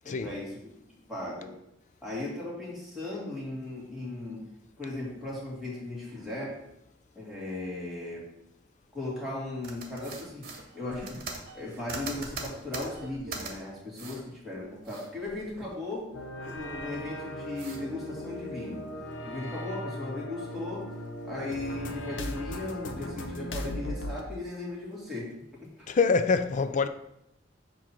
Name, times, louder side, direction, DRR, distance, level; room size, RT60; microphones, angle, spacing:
voice 1, 0.0-0.6 1.1-1.6 2.0-4.4 4.8-6.6 7.2-8.3 8.9-11.3 11.5-16.1 16.4-18.9 19.2-21.0 21.2-25.3 25.8-25.9, left 2 dB, ahead, 2.1 m, -37 dB
sound 1, 9.6-13.5 13.9-14.2 14.6-15.9 16.2-17.1 17.6-17.8, right 3 dB, 55° right, 1.1 m, -41 dB
sound 2, 16.1-24.2, left 1 dB, 85° left, 0.7 m, -38 dB
voice 2, 25.9-26.9, left 4 dB, 40° left, 0.4 m, -25 dB
7.3 x 2.8 x 5.9 m
head